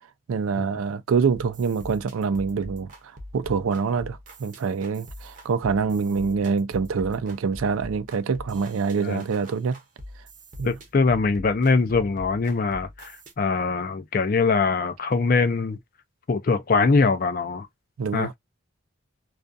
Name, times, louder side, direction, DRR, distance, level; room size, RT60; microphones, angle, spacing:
voice 1, 0.3-2.9 3.3-9.8 10.6-10.7 18.0-18.3, right 5 dB, 80° right, 0.4 m, -25 dB
sound 1, 1.3-13.3, equal, 35° right, 0.7 m, -43 dB
voice 2, 10.6-15.8 16.3-17.7 18.1-18.3, left 4 dB, 40° left, 0.4 m, -22 dB
2.4 x 2.3 x 2.5 m
head